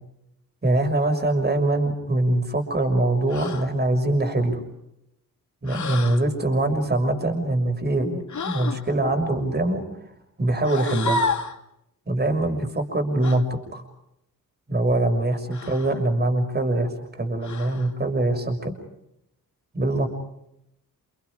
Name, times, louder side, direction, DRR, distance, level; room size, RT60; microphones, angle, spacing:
voice 1, 0.6-4.6 5.6-9.8 10.4-11.2 12.1-13.8 14.7-18.7 19.7-20.1, right 2 dB, 25° right, 5 dB, 6.3 m, -23 dB
sound 1, 3.3-3.7 5.7-6.2 8.3-8.8 10.6-11.6 13.2-13.4 15.5-16.0 17.4-17.9, left 3 dB, 55° left, 2.6 m, -30 dB
29.5 x 29.5 x 5.0 m, 0.80 s
wide cardioid pair, 140°, 36 cm